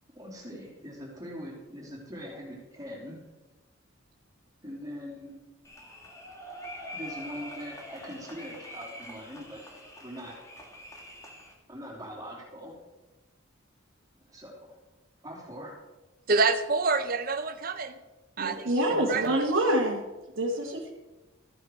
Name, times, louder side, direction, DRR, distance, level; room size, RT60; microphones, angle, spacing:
voice 1, 0.1-3.2 4.6-5.4 6.9-9.6 10.0-10.3 11.7-12.7 14.3-14.8 15.2-15.8 18.9-19.0 20.6-20.7, equal, 20° right, -3 dB, 3.2 m, -42 dB
sound 1, 5.6-11.5, equal, 15° left, 1.8 m, -44 dB
voice 2, 16.3-17.9 18.4-18.7 19.1-19.5, right 4 dB, 45° right, 9 dB, 0.8 m, -27 dB
voice 3, 18.4-20.0 20.4-20.9, right 1 dB, 80° right, -4 dB, 1.7 m, -26 dB
14.0 x 9.8 x 4.6 m, 1.1 s
head